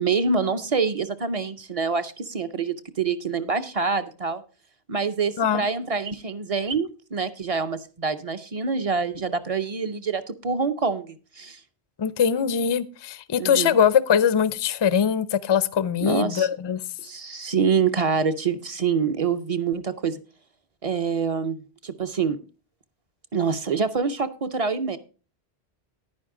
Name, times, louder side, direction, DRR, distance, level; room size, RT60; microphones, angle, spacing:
voice 1, 0.0-4.4 4.9-11.6 13.4-13.8 16.0-16.5 17.0-20.2 20.8-21.6 21.8-22.4 23.3-25.0, right 5 dB, 40° right, 11 dB, 0.6 m, -26 dB
voice 2, 12.0-16.8, left 8 dB, 45° left, 16 dB, 0.3 m, -22 dB
10.5 x 9.8 x 3.7 m, 0.36 s
omnidirectional pair, 1.1 m